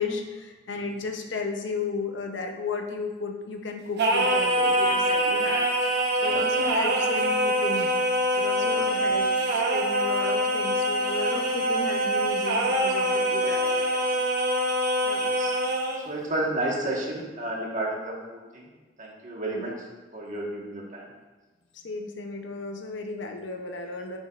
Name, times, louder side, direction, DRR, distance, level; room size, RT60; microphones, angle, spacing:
voice 1, 0.0-5.7 6.2-7.9 8.3-14.3 15.0-15.2 19.5-19.8 21.7-24.2, left 4 dB, 70° left, 4 dB, 0.7 m, -34 dB
Singing, 4.0-16.1, right 1 dB, 60° right, 1.0 m, -24 dB
voice 2, 15.1-15.5 16.0-18.7 19.0-19.7 20.1-21.1, right 1 dB, 40° right, -3 dB, 1.4 m, -32 dB
9.6 x 5.2 x 2.4 m, 1.2 s
head